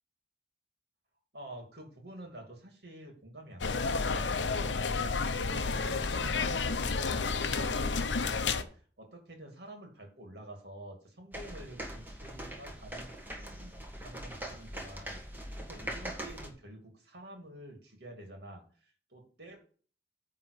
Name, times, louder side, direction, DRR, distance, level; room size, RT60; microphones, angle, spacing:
voice 1, 1.3-4.9 5.3-19.6, right 1 dB, 60° right, 2 dB, 2.7 m, -49 dB
sound 1, 3.6-8.6, left 4 dB, 75° left, 0.8 m, -31 dB
sound 2, 11.3-16.5, right 1 dB, 10° right, 1.5 m, -42 dB
9.5 x 3.9 x 6.7 m, 0.42 s
head